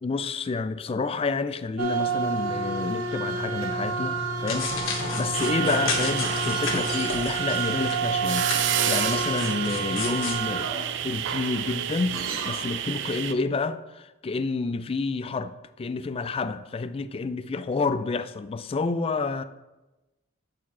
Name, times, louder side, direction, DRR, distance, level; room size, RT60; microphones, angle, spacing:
voice 1, 0.0-4.7 5.2-8.5 8.9-10.7 11.0-12.2 12.5-19.4, left 4 dB, 30° left, 0.3 m, -29 dB
sound 1, 1.8-12.8, right 4 dB, 75° right, 0.9 m, -30 dB
sound 2, 4.5-8.0 8.3-10.4, left 4 dB, 70° left, 1.3 m, -33 dB
sound 3, 5.3-13.3, right 10 dB, 60° right, 0.4 m, -30 dB
8.1 x 4.7 x 4.2 m
head